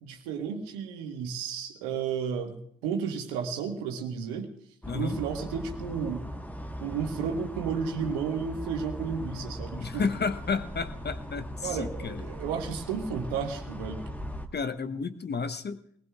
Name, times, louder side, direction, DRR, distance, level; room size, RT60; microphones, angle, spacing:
voice 1, 0.0-2.6 2.8-4.5 4.9-6.2 6.8-10.1 11.6-14.0, right 6 dB, 75° right, 4 dB, 1.6 m, -32 dB
sound 1, 4.8-14.5, equal, 5° left, 1.3 m, -39 dB
voice 2, 4.9-5.2 9.8-12.2 14.5-15.8, left 5 dB, 30° left, 12 dB, 0.9 m, -32 dB
21.0 x 19.5 x 2.4 m, 0.68 s
figure-of-eight pair, 40°, 34 cm